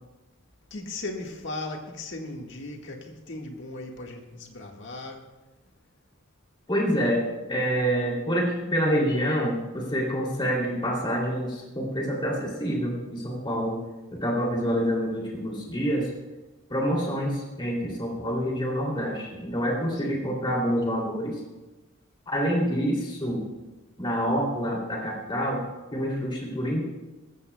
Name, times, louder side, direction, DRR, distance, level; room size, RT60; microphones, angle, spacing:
voice 1, 0.7-5.2 20.0-20.2, left 2 dB, 60° left, 1.6 m, -37 dB
voice 2, 6.7-7.2 7.5-13.8 14.1-16.1 16.7-21.4 22.3-23.5 24.0-25.6 25.9-26.8, equal, 25° left, 2.8 m, -27 dB
19.5 x 15.0 x 2.2 m
head